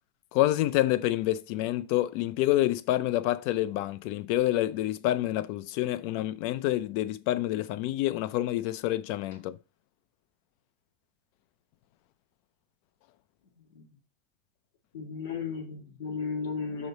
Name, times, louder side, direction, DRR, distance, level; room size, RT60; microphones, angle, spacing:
voice 1, 0.3-9.6, left 15 dB, 45° left, 0.4 m, -27 dB
voice 2, 13.5-13.8 14.9-16.9, left 5 dB, 85° left, 3.0 m, -35 dB
5.0 x 4.0 x 5.3 m
supercardioid pair, 165°, 0 cm